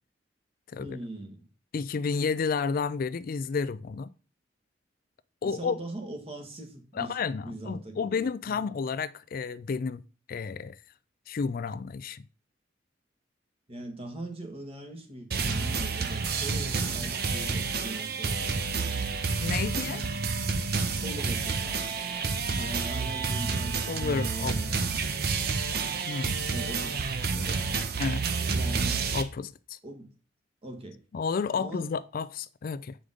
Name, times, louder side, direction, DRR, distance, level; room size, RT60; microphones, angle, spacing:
voice 1, 0.8-1.4 5.4-7.2 7.4-8.7 13.7-18.7 20.8-22.0 22.4-24.8 26.5-27.7 28.5-29.1 29.8-30.1 30.6-31.0 31.5-31.9, right 1 dB, 30° right, 1.6 m, -41 dB
voice 2, 1.7-4.1 5.4-5.8 6.9-10.0 10.3-10.8 11.3-12.2 19.4-20.0 23.9-24.6 26.1-26.4 28.0-28.3 29.1-29.8 31.1-33.0, left 5 dB, 50° left, 0.4 m, -31 dB
sound 1, 15.3-29.2, right 4 dB, 55° right, 0.8 m, -29 dB
7.8 x 5.0 x 3.7 m
head